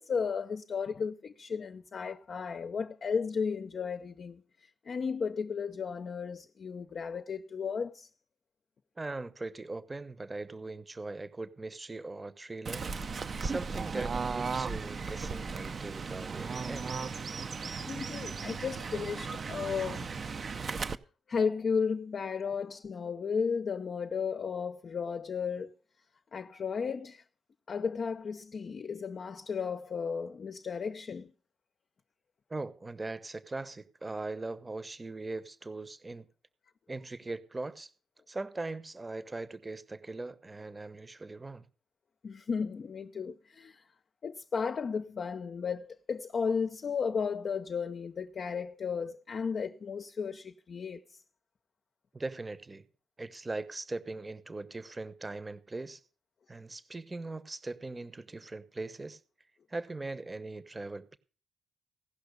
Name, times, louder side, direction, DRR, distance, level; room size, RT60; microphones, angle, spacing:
voice 1, 0.0-8.1 17.9-20.1 21.3-25.7 26.3-27.2 27.7-31.3 42.2-43.8 44.2-51.2, left 6 dB, 45° left, 0.7 m, -34 dB
voice 2, 9.0-12.9 13.4-17.0 32.5-36.3 36.9-37.9 38.3-41.7 52.1-52.8 53.2-56.0 56.5-59.2 59.7-61.2, right 2 dB, 20° right, 1.0 m, -40 dB
Fowl / Bird, 12.7-21.0, right 5 dB, 40° right, 0.7 m, -36 dB
16.5 x 5.7 x 6.7 m
cardioid pair, 90°, 0 cm